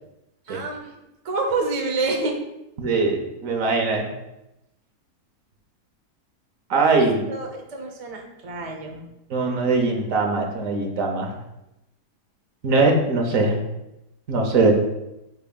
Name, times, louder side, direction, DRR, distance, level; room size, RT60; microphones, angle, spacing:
voice 1, 0.5-1.0 1.2-2.3 7.0-9.0, right 3 dB, 40° right, 2 dB, 0.5 m, -28 dB
voice 2, 2.8-4.1 6.7-7.2 9.3-11.3 12.6-13.6 14.3-14.7, right 3 dB, 60° right, 2 dB, 1.2 m, -21 dB
9.3 x 4.4 x 2.3 m, 0.90 s
omnidirectional pair, 1.7 m